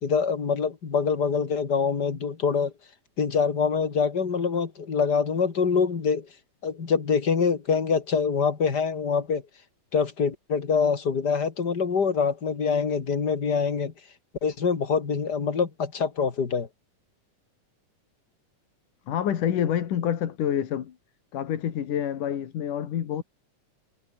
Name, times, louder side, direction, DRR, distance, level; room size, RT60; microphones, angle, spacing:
voice 1, 0.0-2.7 3.2-6.3 6.6-9.4 9.9-13.9 14.4-16.7, left 5 dB, 35° left, 2.6 m, -25 dB
voice 2, 19.1-21.0 21.3-23.2, left 10 dB, 80° left, 3.5 m, -27 dB
omnidirectional pair, 3.6 m